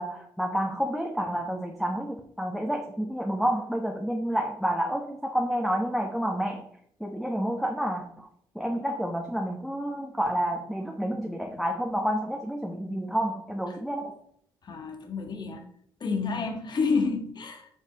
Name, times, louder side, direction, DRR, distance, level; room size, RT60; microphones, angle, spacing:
voice 1, 0.0-6.7 7.0-8.3 8.5-14.1, equal, ahead, 1 dB, 1.0 m, -29 dB
voice 2, 14.6-15.6 16.0-17.7, left 4 dB, 50° left, 5 dB, 1.5 m, -29 dB
9.4 x 5.4 x 3.0 m, 0.67 s
supercardioid pair, 65°, 10 cm